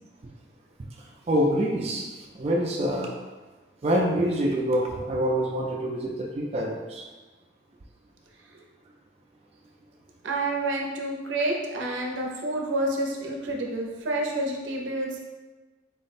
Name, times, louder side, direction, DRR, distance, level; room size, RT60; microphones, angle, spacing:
voice 1, 1.3-3.1 3.8-7.1, equal, 35° right, -1 dB, 0.4 m, -26 dB
voice 2, 10.2-15.2, right 1 dB, 90° right, 0 dB, 0.6 m, -29 dB
3.9 x 2.0 x 4.1 m, 1.3 s
head